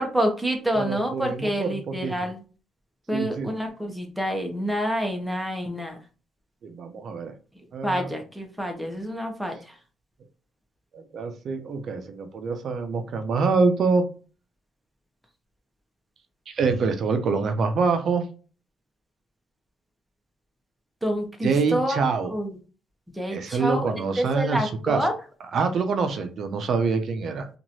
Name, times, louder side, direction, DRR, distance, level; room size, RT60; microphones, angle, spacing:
voice 1, 0.0-2.4 3.1-6.0 7.8-9.5 21.0-22.0 22.3-22.5 23.2-25.1, equal, 5° right, 3 dB, 0.8 m, -27 dB
voice 2, 0.7-2.1 3.1-3.5 6.6-7.3 7.7-8.1 10.9-14.1 16.5-18.2 21.4-22.3 23.3-25.1 25.5-27.5, right 4 dB, 60° right, 7 dB, 0.6 m, -25 dB
3.0 x 2.5 x 2.6 m, 0.36 s
cardioid pair, 90°, 0 cm